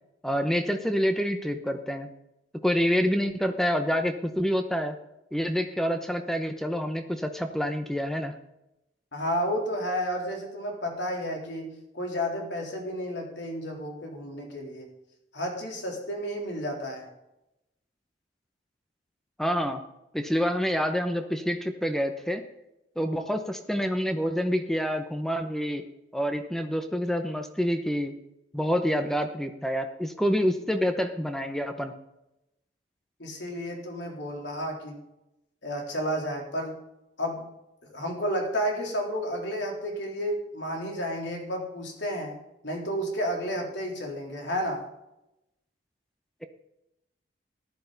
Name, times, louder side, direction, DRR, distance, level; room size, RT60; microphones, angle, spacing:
voice 1, 0.2-2.1 2.6-5.0 5.3-8.3 19.4-19.8 20.1-22.4 23.0-25.8 26.1-28.1 28.5-31.9, equal, ahead, 7 dB, 0.8 m, -27 dB
voice 2, 9.1-14.9 15.3-17.1 33.2-35.0 35.6-36.8 37.2-37.5 37.9-42.4 42.6-44.8, equal, 80° left, 0 dB, 3.5 m, -31 dB
15.0 x 11.0 x 4.0 m, 0.88 s
head